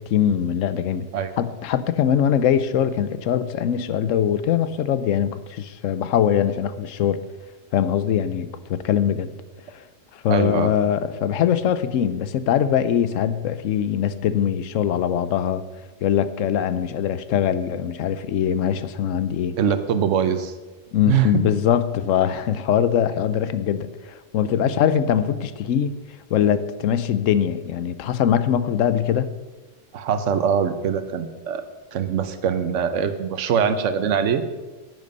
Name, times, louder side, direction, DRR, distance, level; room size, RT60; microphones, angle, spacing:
voice 1, 0.0-1.1 1.4-7.2 7.7-9.3 9.7-9.8 10.1-15.7 16.0-19.6 20.9-26.0 26.3-29.3, left 9 dB, 80° left, 14 dB, 1.0 m, -22 dB
voice 2, 10.3-10.7 19.6-20.5 21.1-21.3 24.6-24.7 29.9-31.6 31.9-34.4, right 7 dB, 70° right, 10 dB, 1.2 m, -22 dB
10.5 x 9.4 x 5.4 m, 1.2 s
omnidirectional pair, 1.3 m